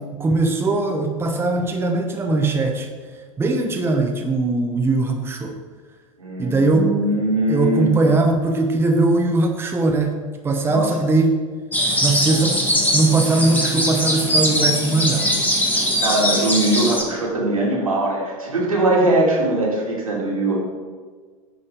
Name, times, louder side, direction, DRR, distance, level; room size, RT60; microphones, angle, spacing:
voice 1, 0.2-2.9 3.4-5.6 6.4-6.9 7.5-11.3 12.0-12.6 12.9-15.3, right 3 dB, 15° right, 3 dB, 0.8 m, -20 dB
voice 2, 6.2-8.0 10.6-11.0 15.7-20.6, right 1 dB, 85° right, -4 dB, 2.3 m, -21 dB
sound 1, 11.7-17.0, equal, 10° left, 1.6 m, -21 dB
9.5 x 4.2 x 5.0 m, 1.5 s
figure-of-eight pair, 85°, 17 cm